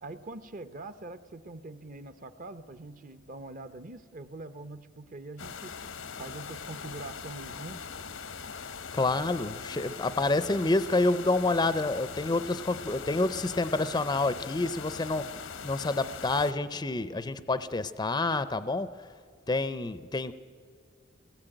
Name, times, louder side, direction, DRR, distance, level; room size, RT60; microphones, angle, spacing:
voice 1, 0.0-5.7 6.2-7.8, right 2 dB, 45° right, 12 dB, 0.8 m, -43 dB
sound 1, 5.4-16.5, left 6 dB, 80° left, 0.9 m, -41 dB
voice 2, 8.9-15.4 15.6-18.9 19.5-20.3, left 2 dB, 20° left, 13 dB, 0.5 m, -28 dB
24.0 x 19.0 x 9.0 m, 2.1 s
head